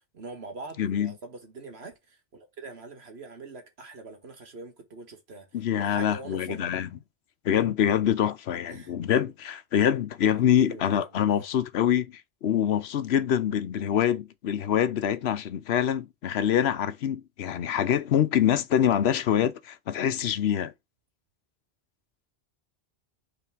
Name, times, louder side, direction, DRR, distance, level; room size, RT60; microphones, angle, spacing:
voice 1, 0.1-2.0 2.3-5.5 5.7-6.7 8.7-8.9 10.5-11.5, right 3 dB, 85° right, 1.8 m, -43 dB
voice 2, 0.8-1.1 5.5-6.9 7.4-20.7, left 9 dB, 85° left, 1.0 m, -25 dB
5.8 x 3.8 x 4.6 m
omnidirectional pair, 1.0 m